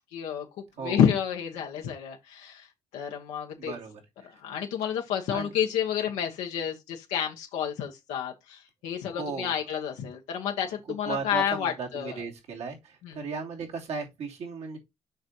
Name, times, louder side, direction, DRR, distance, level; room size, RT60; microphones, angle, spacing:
voice 1, 0.1-2.7 2.9-3.7 4.4-12.2 13.0-13.2, left 8 dB, 90° left, 1.1 m, -30 dB
voice 2, 3.6-4.0 5.3-5.5 9.2-9.5 11.0-14.8, right 5 dB, 70° right, 2.8 m, -36 dB
7.0 x 5.2 x 3.0 m
supercardioid pair, 65°, 11 cm